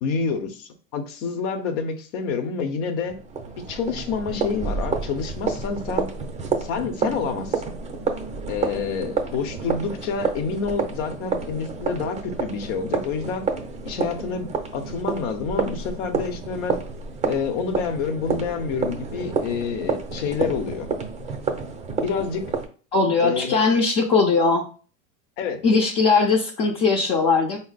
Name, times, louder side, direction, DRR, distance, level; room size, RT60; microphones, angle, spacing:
voice 1, 0.0-3.2 3.7-6.1 6.6-7.6 8.5-13.4 13.8-16.8 17.3-20.9 22.0-22.5 23.2-23.6 25.4-25.6, left 5 dB, 60° left, 7 dB, 0.9 m, -28 dB
sound 1, 3.1-22.7, right 5 dB, 15° right, 0.6 m, -29 dB
voice 2, 22.9-24.6 25.6-27.6, left 4 dB, 40° left, -1 dB, 0.8 m, -19 dB
4.4 x 2.0 x 4.0 m, 0.39 s
supercardioid pair, 120°, 41 cm